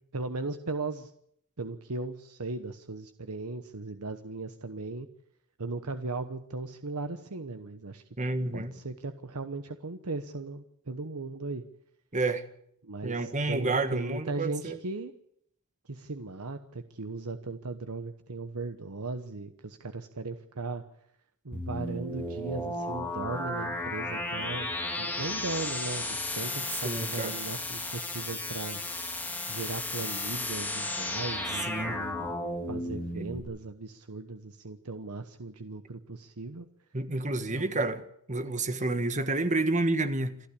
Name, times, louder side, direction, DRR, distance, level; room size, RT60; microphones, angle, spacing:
voice 1, 0.1-1.1 1.6-5.1 5.6-8.0 8.5-11.6 12.8-15.1 15.8-20.8 21.4-24.7 25.0-28.8 29.5-32.4 32.7-36.7 37.5-37.9, right 3 dB, 80° right, 1.1 m, -37 dB
voice 2, 8.2-8.7 12.1-12.4 13.0-14.8 26.8-27.3 31.7-32.0 36.9-38.0 38.3-40.4, right 2 dB, 35° right, 1.5 m, -29 dB
sound 1, 21.5-33.4, left 2 dB, 10° left, 3.3 m, -34 dB
28.0 x 12.0 x 8.5 m
head